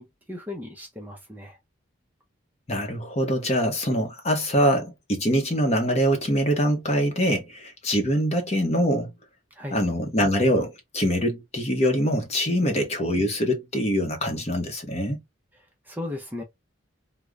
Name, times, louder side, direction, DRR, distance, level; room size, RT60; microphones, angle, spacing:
voice 1, 0.0-1.6 9.5-9.8 12.6-12.7 15.5-16.4, left 2 dB, 10° right, 0.6 m, -37 dB
voice 2, 2.7-9.1 9.7-15.2, equal, 30° left, 0.8 m, -24 dB
3.7 x 2.2 x 3.2 m
head